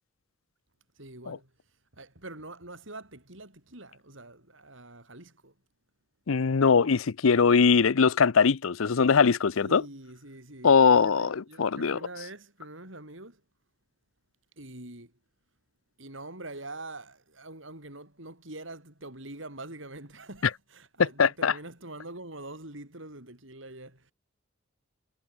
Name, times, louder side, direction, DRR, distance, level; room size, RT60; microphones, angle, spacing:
voice 1, 1.0-1.5 1.9-5.5 9.6-13.4 14.6-15.1 16.0-24.1, right 2 dB, 70° right, 6.8 m, -44 dB
voice 2, 6.3-9.8 10.6-12.0 21.2-21.5, left 5 dB, 85° left, 0.6 m, -21 dB
head